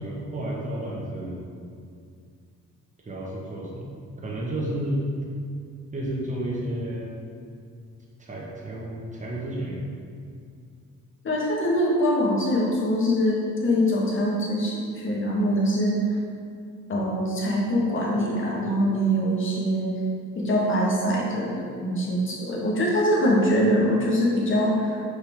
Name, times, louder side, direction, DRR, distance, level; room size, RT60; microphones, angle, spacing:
voice 1, 0.0-1.4 3.0-3.9 4.2-5.1 5.9-7.1 8.2-9.8, right 1 dB, 25° right, -4 dB, 1.4 m, -31 dB
voice 2, 11.2-16.0 16.9-19.9 20.3-25.0, equal, 40° left, -3 dB, 1.4 m, -23 dB
5.4 x 4.9 x 3.6 m, 2.3 s
cardioid pair, 90°, 30 cm